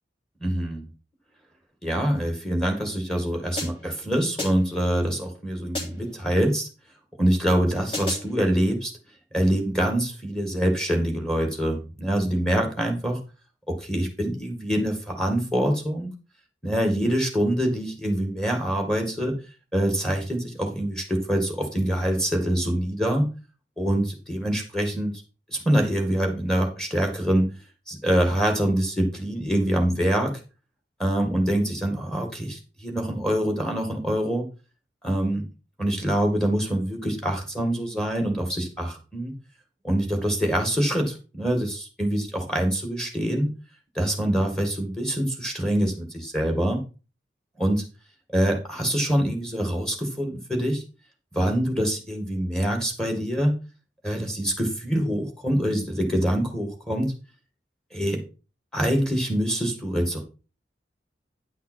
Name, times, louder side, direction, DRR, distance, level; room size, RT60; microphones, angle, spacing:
voice 1, 0.4-0.8 1.8-6.7 7.2-8.9 9.3-13.2 13.7-16.1 16.6-19.4 19.7-23.3 23.8-25.1 25.5-27.5 27.9-30.3 31.0-34.5 35.0-35.4 35.8-39.3 39.8-43.5 44.0-46.8 47.6-47.8 48.3-50.8 51.3-53.6 54.0-57.1 57.9-58.2 58.7-60.2, right 1 dB, 5° left, 3 dB, 2.1 m, -25 dB
sound 1, 3.6-4.0 4.4-4.8 5.7-6.2 7.9-8.4, left 2 dB, 30° left, 3.4 m, -33 dB
10.0 x 5.8 x 4.6 m, 0.33 s
head